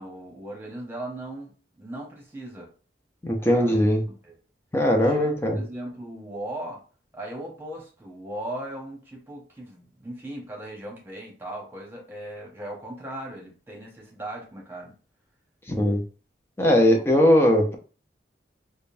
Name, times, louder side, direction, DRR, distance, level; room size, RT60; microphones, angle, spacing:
voice 1, 0.0-2.7 3.4-3.8 4.1-4.3 5.0-6.8 7.1-15.0 16.8-17.1, right 1 dB, 15° right, -2 dB, 1.1 m, -38 dB
voice 2, 3.2-4.0 4.7-5.6 15.7-16.0 16.6-17.7, equal, 15° left, 1 dB, 0.6 m, -20 dB
5.0 x 2.2 x 2.6 m, 0.37 s
head